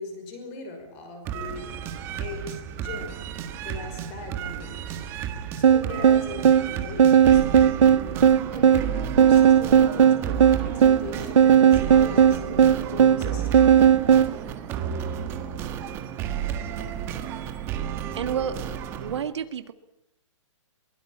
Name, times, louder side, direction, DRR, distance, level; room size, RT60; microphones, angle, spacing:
voice 1, 0.0-1.7 2.2-3.2 3.6-5.0 5.6-7.8 8.5-13.6, left 4 dB, 25° left, 6 dB, 5.5 m, -39 dB
sound 1, 1.2-19.2, right 9 dB, 15° right, 1.6 m, -32 dB
sound 2, 5.6-14.3, right 8 dB, 75° right, 0.8 m, -17 dB
voice 2, 18.1-18.6 19.0-19.7, right 8 dB, 60° right, 9 dB, 1.8 m, -29 dB
23.0 x 21.5 x 8.7 m, 0.85 s
hypercardioid pair, 175°, 16 cm